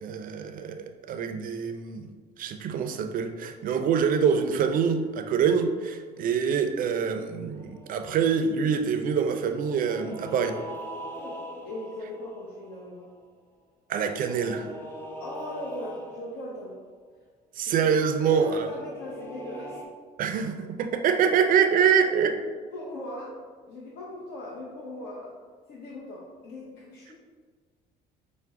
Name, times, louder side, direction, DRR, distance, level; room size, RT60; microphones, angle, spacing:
voice 1, 0.0-2.1 2.4-10.6 13.9-14.7 17.6-18.7 20.2-22.4, right 6 dB, 55° right, 7 dB, 0.4 m, -25 dB
sound 1, 7.5-8.4 9.6-13.1 14.1-16.6 18.5-19.9, equal, 15° left, 0.7 m, -42 dB
voice 2, 11.6-13.1 15.2-16.8 17.6-17.9 18.2-19.8 22.0-22.3 22.7-23.4 23.7-25.3 25.7-27.1, left 1 dB, 70° left, -5 dB, 0.8 m, -39 dB
5.6 x 2.1 x 3.6 m, 1.5 s
cardioid pair, 110°, 17 cm